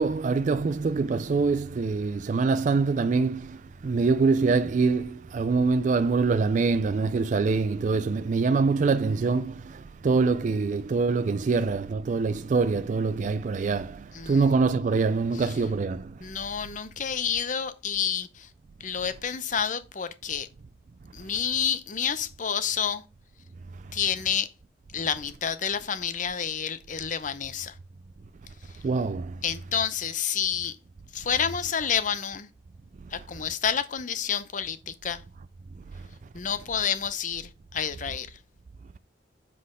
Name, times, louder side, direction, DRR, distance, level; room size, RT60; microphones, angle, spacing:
voice 1, 0.0-16.2 28.8-29.4, right 4 dB, 45° right, 0.3 m, -24 dB
voice 2, 14.1-14.5 16.2-18.5 18.8-20.5 21.1-23.0 23.9-24.5 24.9-27.7 29.4-30.7 31.1-32.5 33.1-35.2 36.3-38.3, left 7 dB, 45° left, 0.7 m, -29 dB
7.5 x 4.1 x 4.9 m
head